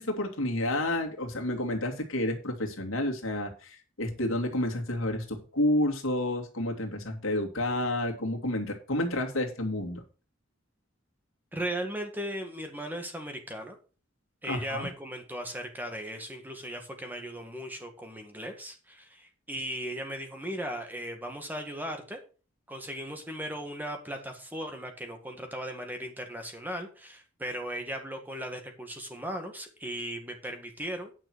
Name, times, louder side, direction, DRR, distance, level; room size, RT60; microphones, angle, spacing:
voice 1, 0.0-10.0 14.5-14.9, left 1 dB, 80° left, 2 dB, 2.3 m, -30 dB
voice 2, 11.5-13.8 14.4-22.2 22.7-31.1, right 1 dB, 10° right, 4 dB, 1.7 m, -37 dB
9.7 x 5.9 x 6.1 m, 0.35 s
head